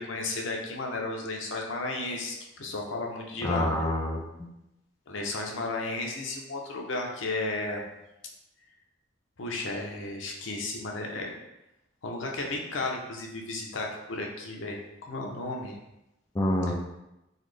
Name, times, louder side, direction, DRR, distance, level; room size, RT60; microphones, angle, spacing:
voice 1, 0.0-3.8 5.1-7.8 9.4-11.3 12.0-14.8 15.1-15.8, left 2 dB, 75° left, 1 dB, 0.6 m, -33 dB
voice 2, 3.4-4.5 16.3-16.7, left 1 dB, 20° left, 0 dB, 0.4 m, -27 dB
3.9 x 2.0 x 3.3 m, 0.91 s
head